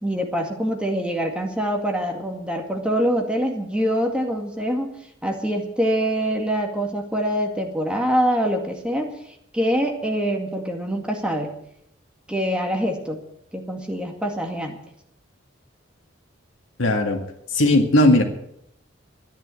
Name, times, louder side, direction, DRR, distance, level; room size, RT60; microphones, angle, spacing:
voice 1, 0.0-4.9 5.2-9.1 9.5-11.6 12.3-13.2 13.5-14.8, equal, 5° right, 2 dB, 2.1 m, -24 dB
voice 2, 16.8-17.2 17.5-18.2, left 1 dB, 80° left, 5 dB, 2.0 m, -17 dB
13.5 x 10.5 x 8.4 m, 0.76 s
head